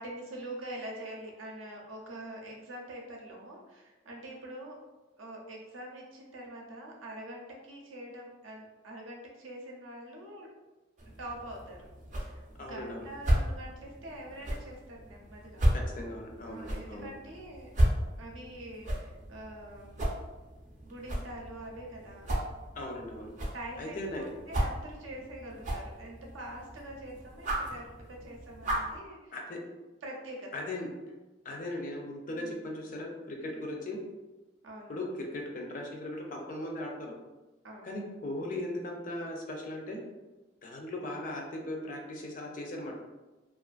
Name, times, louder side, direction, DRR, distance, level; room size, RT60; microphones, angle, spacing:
voice 1, 0.0-4.8 5.2-10.5 11.2-11.9 12.2-15.6 16.4-17.7 18.2-20.0 20.8-22.3 23.5-29.3 30.0-30.5 32.3-32.7 33.4-33.7 34.6-34.9 37.6-37.9, right 1 dB, 85° right, -1 dB, 0.6 m, -45 dB
sound 1, 11.0-29.0, equal, 40° right, 0.5 m, -34 dB
voice 2, 12.6-13.1 15.7-17.1 22.8-23.3 23.8-24.3 29.3-29.6 30.5-30.9 31.4-34.0 34.9-37.1 37.8-40.0 40.6-42.9, left 1 dB, 40° left, 0 dB, 0.4 m, -38 dB
2.4 x 2.4 x 2.3 m, 1.1 s
head